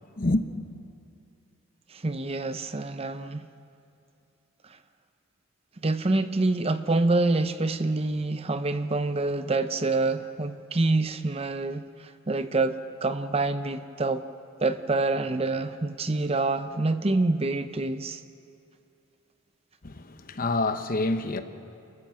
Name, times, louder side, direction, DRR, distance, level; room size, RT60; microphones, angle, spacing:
voice 1, 1.9-3.5 5.8-14.3 14.6-18.2, right 2 dB, 30° right, 0.7 m, -26 dB
voice 2, 19.8-21.4, left 2 dB, 45° left, 1.0 m, -27 dB
29.0 x 14.5 x 7.7 m
head